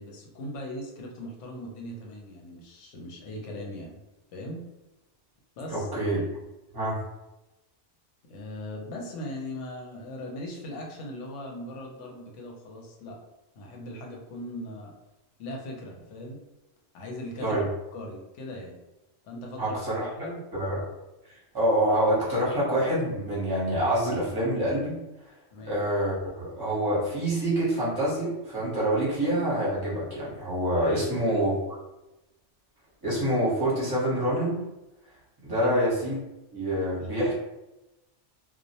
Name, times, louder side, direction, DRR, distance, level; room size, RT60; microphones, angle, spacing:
voice 1, 0.0-4.0 4.3-4.6 5.6-5.9 8.3-13.2 13.6-14.9 15.4-16.4 16.9-17.6 17.9-18.8 19.2-20.4 25.5-25.8 30.8-31.4 35.5-35.8 36.7-37.3, left 1 dB, 85° left, 0 dB, 0.9 m, -39 dB
voice 2, 5.7-6.2 6.7-7.0 17.4-17.6 19.6-20.9 21.5-25.0 25.6-31.6 33.0-34.6 35.4-36.2 36.5-37.3, right 1 dB, 20° right, -8 dB, 0.8 m, -26 dB
2.2 x 2.0 x 2.7 m, 0.98 s
omnidirectional pair, 1.2 m